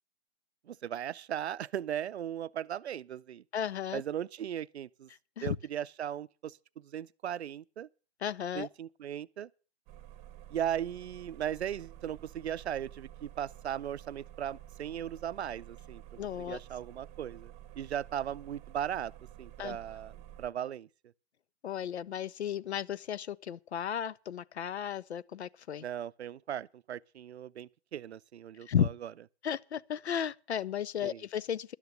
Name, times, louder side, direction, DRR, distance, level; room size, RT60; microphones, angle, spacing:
voice 1, 0.7-3.4 3.9-5.1 5.4-7.9 8.5-9.5 10.5-16.0 16.5-19.1 19.4-20.9 25.8-28.9 31.0-31.2, right 10 dB, 75° right, 0.5 m, -37 dB
voice 2, 3.5-4.0 5.4-5.6 8.2-8.7 16.2-16.6 19.6-19.8 21.6-25.8 28.7-28.9 29.4-31.7, left 9 dB, 75° left, 0.6 m, -34 dB
sound 1, 9.9-20.5, right 13 dB, 20° right, 1.0 m, -51 dB
11.5 x 9.4 x 6.6 m
hypercardioid pair, 130°, 33 cm